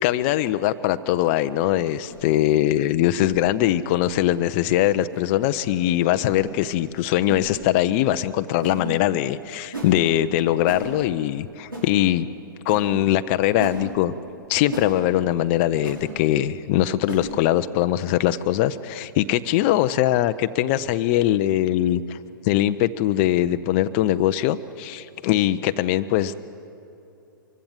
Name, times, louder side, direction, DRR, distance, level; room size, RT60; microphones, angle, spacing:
voice 1, 0.0-12.3 12.7-14.1 14.5-22.2 22.4-26.3, left 13 dB, 35° left, 11 dB, 0.5 m, -21 dB
sound 1, 2.1-2.3 3.2-3.3 4.0-4.2 5.1-5.3 6.2-6.4 7.3-7.4 8.6-8.8 9.7-9.9 10.7-10.9 11.7-11.9 12.7-12.8 13.6-13.8 14.7-14.9 15.8-16.0 17.1-17.3, right 1 dB, 80° right, 5.7 m, -34 dB
23.0 x 15.5 x 9.5 m, 2.8 s
figure-of-eight pair, 110°, 11 cm